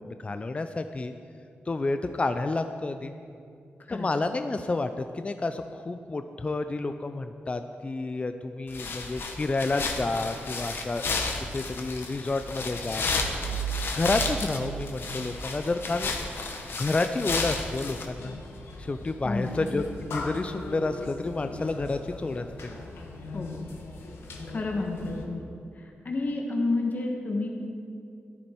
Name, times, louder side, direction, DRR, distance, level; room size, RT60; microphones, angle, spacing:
voice 1, 0.1-1.1 1.7-3.1 3.9-11.2 11.5-13.1 13.9-16.1 16.8-18.3 18.8-19.8 20.1-22.5, left 3 dB, 30° left, 8 dB, 0.5 m, -30 dB
sound 1, 8.7-18.1, left 3 dB, 65° left, 1.3 m, -32 dB
sound 2, 13.1-15.9, right 9 dB, 85° right, 0.5 m, -36 dB
sound 3, 18.2-25.3, left 3 dB, 85° left, 1.4 m, -40 dB
voice 2, 19.2-19.6 23.3-23.6 24.5-25.5 25.8-27.5, left 2 dB, 45° left, 1 dB, 1.4 m, -30 dB
13.0 x 11.0 x 4.5 m, 2.4 s
cardioid pair, 70°, 4 cm